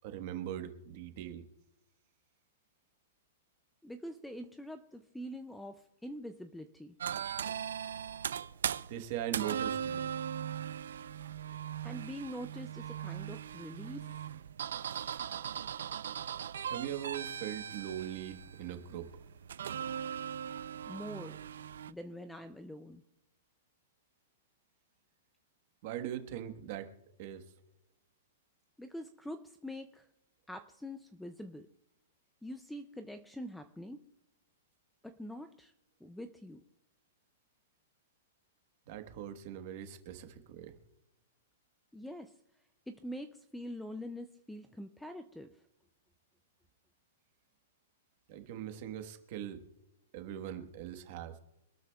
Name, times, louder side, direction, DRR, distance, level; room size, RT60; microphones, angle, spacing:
voice 1, 0.0-1.4 8.9-10.1 16.7-19.1 25.8-26.9 27.2-27.4 38.9-40.8 48.3-49.6 50.1-51.4, right 11 dB, 35° right, 7 dB, 1.2 m, -40 dB
voice 2, 3.8-7.0 11.8-14.3 20.9-21.4 21.9-23.0 28.8-30.1 30.5-31.7 32.4-34.1 35.0-35.7 36.0-36.6 41.9-42.4 42.9-45.6, equal, ahead, 8 dB, 0.3 m, -45 dB
sound 1, 7.0-21.9, right 9 dB, 80° right, 0.5 m, -39 dB
25.5 x 12.5 x 2.3 m, 0.86 s
hypercardioid pair, 180°, 0 cm